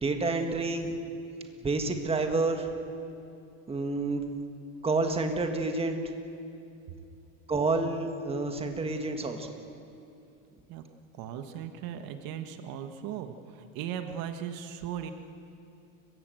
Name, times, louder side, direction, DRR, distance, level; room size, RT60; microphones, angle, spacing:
voice 1, 0.0-0.9 1.6-2.7 3.7-4.2 4.8-6.0 7.5-9.5, right 3 dB, 15° right, 5 dB, 1.7 m, -29 dB
voice 2, 11.1-15.1, right 9 dB, 70° right, 7 dB, 1.6 m, -38 dB
30.0 x 16.0 x 7.9 m, 2.6 s
cardioid pair, 140°, 37 cm